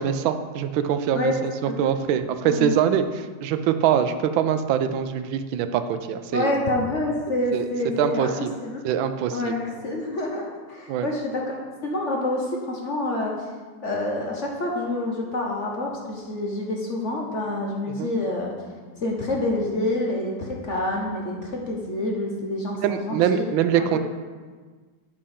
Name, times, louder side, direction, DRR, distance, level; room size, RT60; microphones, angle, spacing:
voice 1, 0.0-6.5 7.5-7.7 8.0-8.5 8.8-9.5 10.9-11.1 18.0-18.1 22.8-24.0, right 9 dB, 85° right, 9 dB, 1.4 m, -23 dB
voice 2, 6.3-8.3 8.6-8.8 9.3-13.5 13.8-18.5 19.0-23.4 23.7-24.0, left 2 dB, 45° left, -1 dB, 1.1 m, -27 dB
8.6 x 4.9 x 5.7 m, 1.5 s
omnidirectional pair, 2.1 m